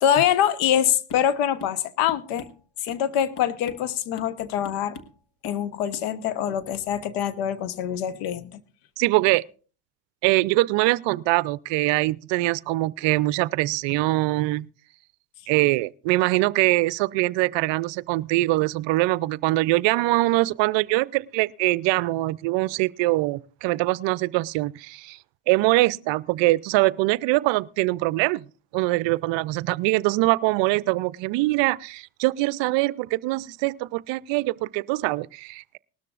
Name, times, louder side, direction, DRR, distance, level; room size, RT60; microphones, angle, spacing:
voice 1, 0.0-2.5 2.8-5.0 5.4-8.6, left 10 dB, 80° left, 1.1 m, -24 dB
sound 1, 1.1-1.3 1.6-1.8 2.1-3.1 3.4-3.9 4.2-4.4 4.6-5.2 5.4-5.6 5.9-6.1, left 4 dB, 55° left, 1.4 m, -43 dB
voice 2, 9.0-9.5 10.2-14.7 15.5-25.2 25.5-28.5 28.7-35.8, right 20 dB, 65° right, 0.6 m, -23 dB
19.0 x 13.0 x 2.4 m
supercardioid pair, 80°, 48 cm